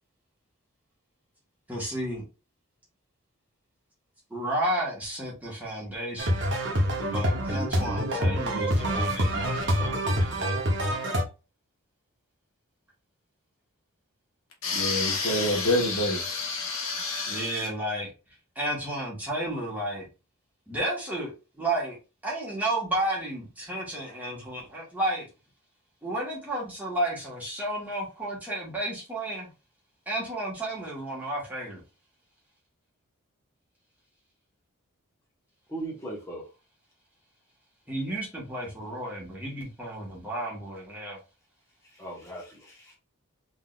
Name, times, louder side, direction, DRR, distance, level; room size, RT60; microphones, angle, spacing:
voice 1, 1.7-2.2 4.3-6.4 7.0-10.6 17.3-18.1 18.6-20.1 20.7-22.0 22.2-25.3 26.0-29.5 30.1-31.8 37.9-41.2, right 1 dB, 5° right, 1.6 m, -32 dB
sound 1, 6.2-11.2, equal, 55° right, 1.1 m, -26 dB
voice 2, 14.6-17.7, left 2 dB, 65° left, 1.4 m, -27 dB
voice 3, 35.7-36.5 41.8-43.0, right 2 dB, 15° left, 1.3 m, -38 dB
3.8 x 3.5 x 2.5 m
head